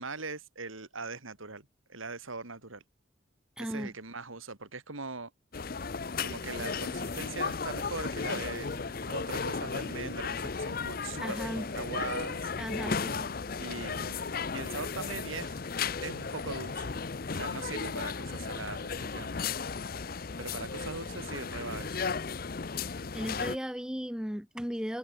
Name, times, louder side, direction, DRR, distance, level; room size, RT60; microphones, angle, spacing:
voice 1, 0.0-2.8 3.6-5.3 6.2-12.5 13.6-15.5 16.0-17.0 17.3-19.4 20.4-22.0, right 3 dB, 85° right, 3.7 m, -41 dB
voice 2, 3.6-3.9 11.2-11.7 12.6-13.3 23.1-25.0, equal, 5° right, 0.7 m, -36 dB
sound 1, 5.5-23.6, left 5 dB, 45° left, 0.7 m, -35 dB
head